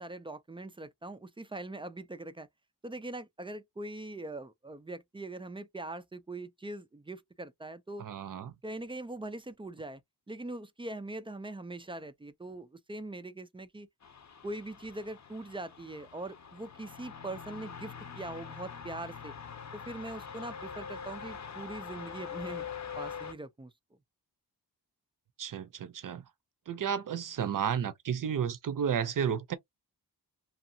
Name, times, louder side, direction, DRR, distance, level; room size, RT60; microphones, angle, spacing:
voice 1, 0.0-2.5 2.8-8.1 8.6-10.0 10.3-13.9 14.4-19.3 19.7-22.7 23.0-23.7, right 2 dB, 15° right, 0.3 m, -42 dB
voice 2, 8.0-8.6 25.4-26.2 26.7-29.6, right 8 dB, 50° right, 0.6 m, -32 dB
sound 1, 14.0-23.3, left 7 dB, 40° left, 0.7 m, -44 dB
2.7 x 2.4 x 2.6 m
cardioid pair, 65°, 43 cm